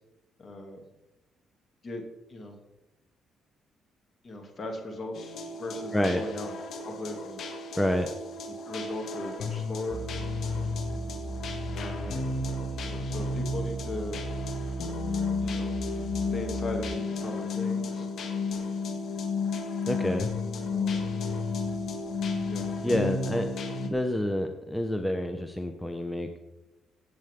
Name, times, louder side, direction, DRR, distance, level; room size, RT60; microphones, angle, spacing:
voice 1, 0.4-0.8 1.8-2.0 2.3-2.6 4.2-6.5 6.8-7.4 8.7-10.0 11.7-12.2 12.8-14.2 15.4-15.7 16.3-18.1 20.7-20.9 22.5-23.2, left 2 dB, 40° left, 3 dB, 2.8 m, -38 dB
sound 1, 5.1-23.9, left 3 dB, 65° left, 1.9 m, -33 dB
voice 2, 7.8-8.1 19.9-20.3 22.8-23.5 23.9-26.4, left 1 dB, 10° left, 6 dB, 1.1 m, -28 dB
sound 2, 9.9-17.0, right 2 dB, 15° right, 0.5 m, -38 dB
17.0 x 8.1 x 3.8 m, 0.96 s
cardioid pair, 85°, 0 cm